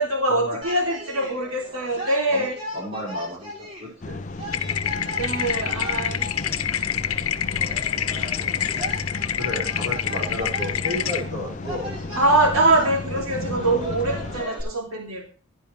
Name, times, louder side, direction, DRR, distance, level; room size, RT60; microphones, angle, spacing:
voice 1, 0.0-2.6 5.2-6.3 12.2-15.3, right 2 dB, 80° right, 1 dB, 2.6 m, -23 dB
sound 1, 0.6-14.6, equal, 25° right, 7.2 m, -38 dB
voice 2, 2.7-4.2 6.1-6.2 9.4-11.9 13.4-13.8, left 1 dB, 45° right, -5 dB, 5.5 m, -32 dB
sound 2, 4.0-14.4, left 2 dB, 35° left, 0.6 m, -33 dB
sound 3, 4.5-11.2, left 9 dB, 85° left, 1.1 m, -27 dB
16.5 x 11.0 x 3.3 m, 0.34 s
head